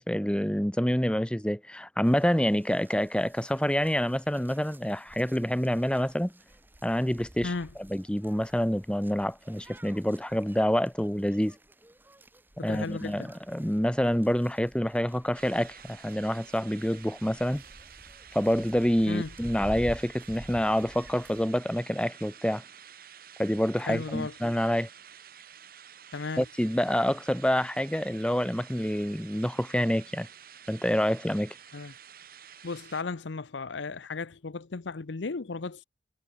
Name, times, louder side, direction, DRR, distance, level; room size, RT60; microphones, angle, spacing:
voice 1, 0.0-6.3 6.8-7.5 7.9-11.6 12.6-17.6 18.3-22.6 23.4-24.9 26.4-30.3 30.7-31.6, equal, 5° left, 1.0 m, -27 dB
sound 1, 2.0-21.5, equal, 10° right, 1.9 m, -50 dB
voice 2, 12.6-13.3 19.1-19.3 23.8-24.3 26.1-26.4 31.7-31.9 32.6-35.8, left 4 dB, 80° left, 0.7 m, -35 dB
sound 2, 15.3-33.0, right 9 dB, 50° right, 3.1 m, -50 dB
head